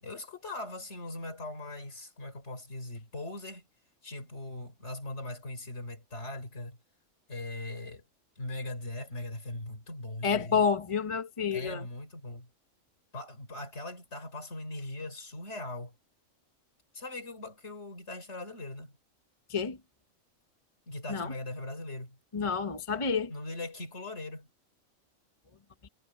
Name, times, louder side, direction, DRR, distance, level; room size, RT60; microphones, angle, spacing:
voice 1, 0.0-3.7 4.0-6.8 7.3-8.0 8.4-10.6 11.5-12.5 13.1-15.9 16.9-18.9 20.9-22.2 23.3-24.5, left 2 dB, 60° left, 4.3 m, -40 dB
voice 2, 10.2-11.8 19.5-19.8 21.1-21.3 22.3-23.3 25.8-25.9, left 6 dB, 25° left, 1.0 m, -29 dB
omnidirectional pair, 1.3 m